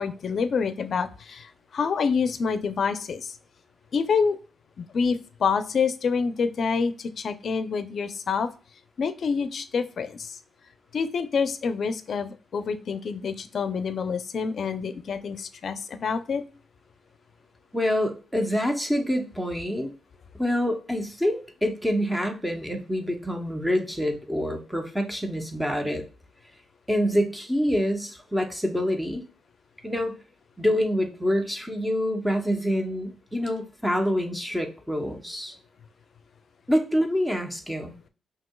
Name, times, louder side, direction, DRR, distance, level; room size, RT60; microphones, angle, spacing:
voice 1, 0.0-3.4 3.9-4.4 4.8-8.5 9.0-10.4 10.9-16.4, left 5 dB, 60° left, 11 dB, 0.5 m, -27 dB
voice 2, 17.7-19.9 20.4-26.1 26.9-29.2 29.8-30.2 30.6-35.5 36.7-37.9, equal, 5° right, 4 dB, 0.9 m, -26 dB
5.8 x 2.9 x 2.3 m, 0.37 s
cardioid pair, 105°, 0 cm